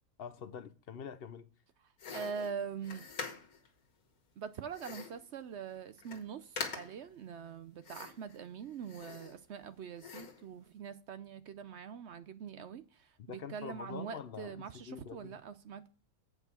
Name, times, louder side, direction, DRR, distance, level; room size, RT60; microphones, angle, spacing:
voice 1, 0.2-1.5 13.2-15.3, left 7 dB, 55° left, 0.8 m, -45 dB
sound 1, 2.0-3.7 4.7-5.3 5.7-5.8 6.0-6.3 6.6-7.1 7.8-8.4 8.8-9.6 10.0-10.5, left 5 dB, 85° left, 1.8 m, -44 dB
voice 2, 2.1-3.1 4.4-15.9, right 7 dB, 65° right, 0.8 m, -43 dB
8.1 x 4.7 x 6.9 m
omnidirectional pair, 1.5 m